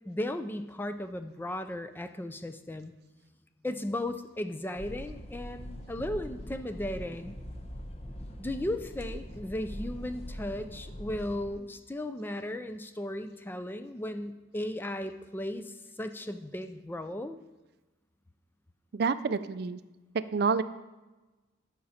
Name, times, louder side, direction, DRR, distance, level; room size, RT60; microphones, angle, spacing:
voice 1, 0.1-2.9 3.6-7.4 8.4-17.4, left 1 dB, 10° left, 9 dB, 0.4 m, -36 dB
sound 1, 4.8-11.5, equal, 30° left, 0.8 m, -42 dB
voice 2, 18.9-19.8 20.3-20.6, right 5 dB, 55° right, 14 dB, 0.4 m, -28 dB
13.5 x 5.8 x 4.2 m, 1.1 s
head